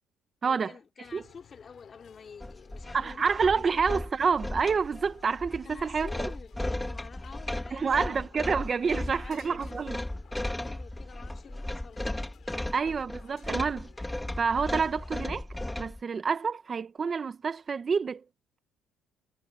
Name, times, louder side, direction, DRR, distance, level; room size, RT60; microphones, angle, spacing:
voice 1, 0.4-3.9 5.6-8.3 8.9-9.9 10.6-12.1 12.5-12.8, left 6 dB, 40° left, 4.7 m, -49 dB
sound 1, 1.0-15.5, left 9 dB, 55° left, 7.0 m, -58 dB
sound 2, 2.4-16.0, left 1 dB, 10° left, 3.3 m, -36 dB
voice 2, 2.9-6.1 7.7-10.0 12.7-13.9 14.4-15.5 15.8-18.2, right 5 dB, 35° right, 1.4 m, -28 dB
cardioid pair, 90°, 0 cm